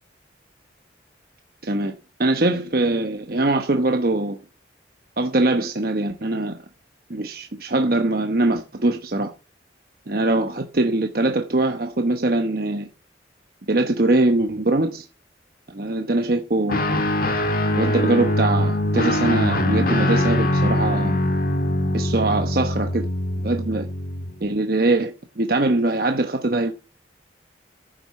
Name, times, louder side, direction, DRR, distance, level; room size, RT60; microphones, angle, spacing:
voice 1, 1.6-1.9 2.2-4.4 5.2-6.6 7.1-9.3 10.1-12.9 13.7-15.0 15.7-16.8 17.8-21.2 21.9-23.1 23.4-23.9 24.4-26.7, right 2 dB, 50° right, 1.0 m, -22 dB
Guitar, 16.7-24.4, left 1 dB, 50° left, 1.7 m, -22 dB
10.0 x 7.9 x 8.2 m
head